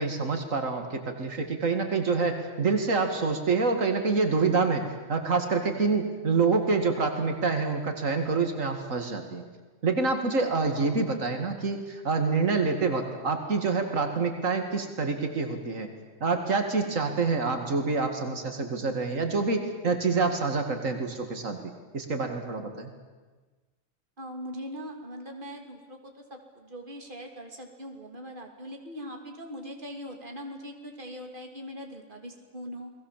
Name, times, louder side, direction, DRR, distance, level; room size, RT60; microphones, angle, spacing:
voice 1, 0.0-9.4 9.8-15.9 16.2-21.6 21.9-22.9, right 4 dB, 85° right, 5 dB, 2.6 m, -27 dB
voice 2, 10.7-11.1 24.2-32.9, equal, 40° right, 3 dB, 3.1 m, -41 dB
29.5 x 20.5 x 7.5 m, 1.3 s
omnidirectional pair, 1.3 m